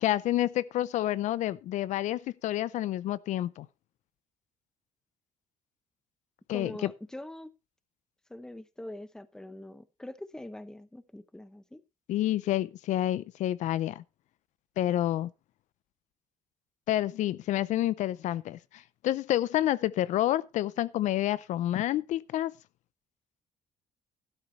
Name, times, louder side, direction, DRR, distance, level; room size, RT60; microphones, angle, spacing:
voice 1, 0.0-3.7 6.5-6.9 12.1-14.0 14.8-15.3 16.9-22.5, left 13 dB, 70° left, 0.5 m, -29 dB
voice 2, 6.5-7.5 8.3-11.8, left 1 dB, 5° left, 0.7 m, -43 dB
12.5 x 12.0 x 3.1 m
cardioid pair, 150°, 13 cm